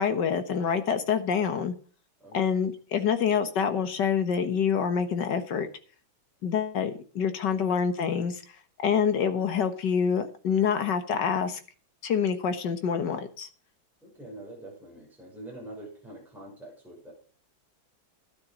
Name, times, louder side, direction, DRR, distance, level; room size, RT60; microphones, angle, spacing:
voice 1, 0.0-1.7 2.3-5.7 6.4-8.4 8.8-11.6 12.0-13.5, left 7 dB, 60° left, 9 dB, 1.9 m, -26 dB
voice 2, 2.2-2.6 7.5-7.7 14.0-17.1, right 1 dB, ahead, -4 dB, 6.1 m, -45 dB
12.5 x 10.0 x 5.2 m, 0.41 s
omnidirectional pair, 2.2 m